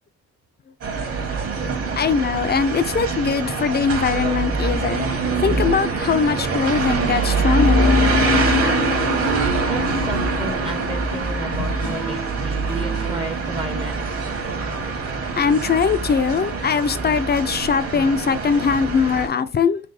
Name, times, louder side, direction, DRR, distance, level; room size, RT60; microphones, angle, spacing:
sound 1, 0.8-19.3, right 3 dB, 50° right, 1.4 m, -24 dB
voice 1, 2.0-5.1 5.4-8.1 11.5-11.7 14.7-14.8 15.3-19.8, left 6 dB, 35° left, 0.5 m, -21 dB
sound 2, 6.7-13.5, right 8 dB, 70° right, 1.3 m, -34 dB
sound 3, 7.6-12.9, left 9 dB, 80° left, 0.6 m, -27 dB
voice 2, 9.7-14.0, right 1 dB, 15° right, 0.7 m, -32 dB
3.4 x 3.2 x 4.1 m
cardioid pair, 90°, 30 cm